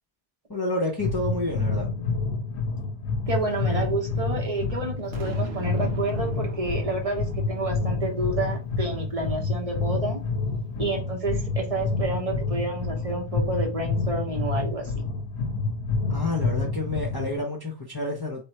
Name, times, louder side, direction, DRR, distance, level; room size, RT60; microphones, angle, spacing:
voice 1, 0.5-1.9 16.1-18.4, left 2 dB, 25° left, 0.9 m, -29 dB
sound 1, 1.0-17.4, left 3 dB, 85° left, 1.0 m, -28 dB
voice 2, 3.3-10.2 10.8-14.9, right 2 dB, 35° right, 1.0 m, -29 dB
Boom, 5.1-8.4, right 5 dB, 70° right, 1.1 m, -41 dB
3.5 x 3.1 x 4.5 m
omnidirectional pair, 1.1 m